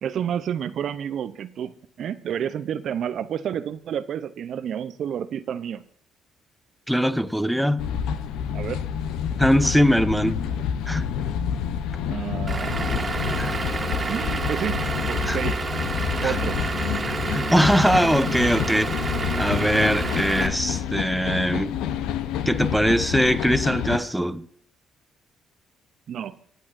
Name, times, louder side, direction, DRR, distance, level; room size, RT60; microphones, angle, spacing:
voice 1, 0.0-5.8 8.5-8.8 12.1-13.7 14.0-15.8 16.2-16.6 26.1-26.3, right 9 dB, 65° right, 0.6 m, -30 dB
voice 2, 6.9-7.9 9.4-10.4 10.9-11.1 13.4-13.6 15.3-15.4 16.2-16.3 17.1-21.8 22.5-24.4, equal, ahead, 0.9 m, -22 dB
sound 1, 7.8-24.0, left 8 dB, 80° left, 0.7 m, -28 dB
Vehicle / Engine, 12.5-20.5, right 4 dB, 35° right, 1.9 m, -29 dB
23.0 x 8.4 x 2.5 m
supercardioid pair, 70°, 0 cm